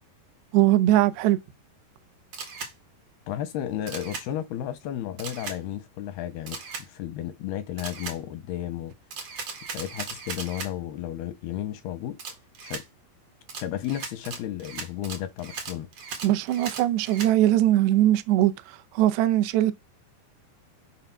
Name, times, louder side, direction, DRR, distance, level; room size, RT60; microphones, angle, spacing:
voice 1, 0.5-1.4 16.2-19.7, right 13 dB, 75° right, 2.7 m, -21 dB
Camera, 2.3-2.7 3.9-4.3 5.2-5.6 6.5-6.9 7.8-8.2 9.1-10.7 12.2-12.8 13.5-17.3, right 5 dB, 60° right, 1.6 m, -37 dB
voice 2, 3.3-8.9 9.7-12.2 12.6-12.8 13.6-15.9, left 11 dB, 85° left, 2.3 m, -33 dB
11.5 x 4.0 x 5.8 m
omnidirectional pair, 5.3 m